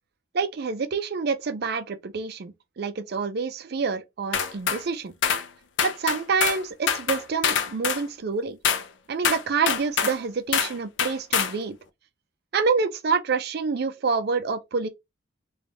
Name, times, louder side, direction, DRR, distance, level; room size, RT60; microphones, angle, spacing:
voice 1, 0.3-5.1 5.8-8.6 9.1-11.8 12.5-14.9, right 5 dB, 50° right, 0.4 m, -27 dB
sound 1, 4.3-4.8 5.2-5.5 5.8-6.6 6.9-8.0 8.6-8.9 9.2-10.2 10.5-10.7 11.0-11.6, left 7 dB, 60° left, 0.4 m, -24 dB
3.4 x 2.3 x 3.8 m
head